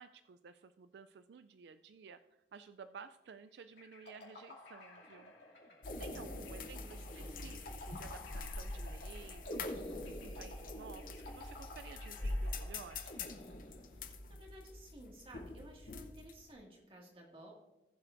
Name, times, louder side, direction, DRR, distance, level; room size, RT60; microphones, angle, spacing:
voice 1, 0.0-5.7 6.0-13.0, right 6 dB, 75° right, 12 dB, 0.3 m, -54 dB
sound 1, 3.8-14.2, left 1 dB, 80° left, 2.6 m, -49 dB
sound 2, 5.8-16.5, left 2 dB, 50° left, 0.8 m, -44 dB
voice 2, 6.6-7.3 14.3-17.5, right 1 dB, 30° right, -1 dB, 2.0 m, -55 dB
19.0 x 7.6 x 2.6 m, 1.0 s
head